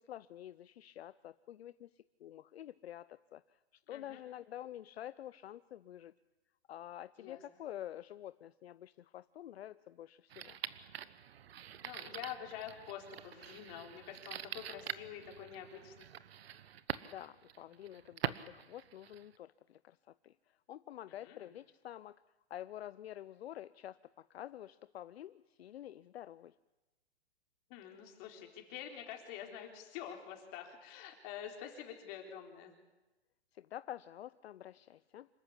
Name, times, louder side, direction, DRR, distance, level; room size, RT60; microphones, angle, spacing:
voice 1, 0.0-6.1 6.7-10.6 17.0-22.2 22.5-26.6 33.5-35.3, left 12 dB, 70° left, 15 dB, 0.7 m, -49 dB
voice 2, 3.9-4.2 7.2-7.4 11.8-16.1 21.1-21.5 27.7-32.7, left 9 dB, 35° left, 2 dB, 4.2 m, -47 dB
sound 1, 10.3-19.4, right 10 dB, 65° right, 1.2 m, -45 dB
26.5 x 14.5 x 9.9 m, 1.1 s
hypercardioid pair, 150°, 32 cm